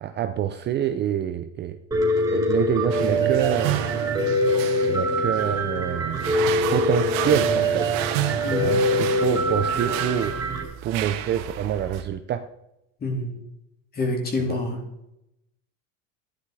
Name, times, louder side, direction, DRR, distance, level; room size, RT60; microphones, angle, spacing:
voice 1, 0.0-1.8 2.2-3.9 4.8-6.3 6.7-8.1 8.6-10.4 10.8-12.5 14.5-14.6, right 10 dB, 30° right, 9 dB, 0.6 m, -27 dB
Piano, 1.9-10.6, equal, 10° right, 3.6 m, -24 dB
sound 1, 2.9-12.0, right 11 dB, 70° right, 2.1 m, -31 dB
voice 2, 8.4-8.8 13.0-13.4 14.0-14.8, left 2 dB, 25° left, 1 dB, 3.6 m, -27 dB
14.5 x 11.0 x 4.8 m, 0.86 s
cardioid pair, 155°, 38 cm